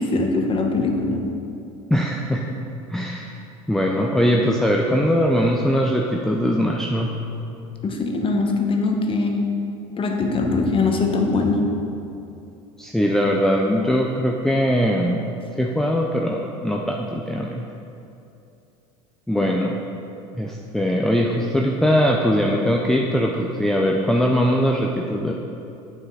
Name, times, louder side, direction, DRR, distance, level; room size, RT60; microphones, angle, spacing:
voice 1, 0.0-1.4 7.8-9.7 10.0-11.7 19.4-19.5, left 3 dB, 30° left, 2 dB, 1.2 m, -22 dB
voice 2, 1.9-2.4 2.9-3.3 3.7-7.2 12.8-15.2 15.6-17.6 19.3-19.7 20.4-25.3, equal, 5° left, -1 dB, 0.6 m, -21 dB
8.6 x 7.8 x 4.2 m, 2.7 s
hypercardioid pair, 85°, 17 cm